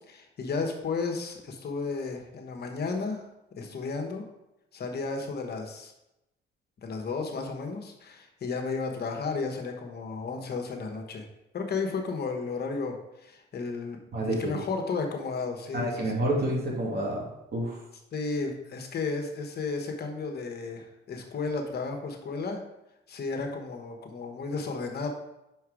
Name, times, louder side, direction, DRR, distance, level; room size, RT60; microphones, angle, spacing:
voice 1, 0.0-3.2 3.6-4.2 4.7-5.9 6.8-11.2 11.5-14.0 14.2-16.1 18.1-22.6 23.1-25.1, left 4 dB, 55° left, 3 dB, 1.2 m, -33 dB
voice 2, 14.1-14.6 15.7-17.3 17.5-17.8, right 1 dB, 55° right, -2 dB, 2.4 m, -28 dB
6.0 x 4.6 x 4.9 m, 0.90 s
cardioid pair, 90°, 20 cm